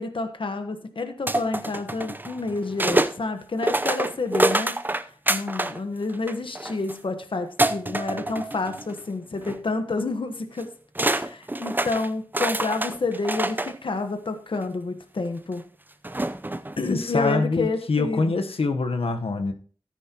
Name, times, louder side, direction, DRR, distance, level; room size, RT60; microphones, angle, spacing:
voice 1, 0.0-4.8 5.3-10.7 11.0-15.6 16.8-18.4, left 3 dB, 60° left, 1.2 m, -29 dB
sound 1, 1.3-3.2 3.6-5.8 6.1-7.0 7.6-9.0 9.4-9.6 10.6-10.7 11.0-13.7 14.6-14.7 16.0-16.8, right 1 dB, 20° right, 0.6 m, -26 dB
voice 2, 16.9-19.5, left 3 dB, 80° left, 1.0 m, -25 dB
13.5 x 9.8 x 2.9 m
wide cardioid pair, 80°, 10 cm